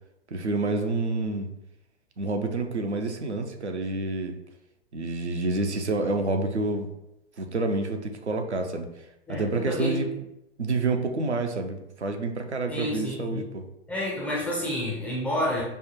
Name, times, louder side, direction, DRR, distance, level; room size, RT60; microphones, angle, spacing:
voice 1, 0.3-1.5 2.2-4.3 4.9-6.9 7.4-8.9 9.3-10.1 10.6-13.6, right 3 dB, 85° right, 4 dB, 0.6 m, -28 dB
voice 2, 9.3-10.0 12.7-13.4 13.9-15.6, left 1 dB, 5° left, -5 dB, 0.3 m, -29 dB
5.4 x 2.1 x 2.9 m, 0.87 s
figure-of-eight pair, 105°, 33 cm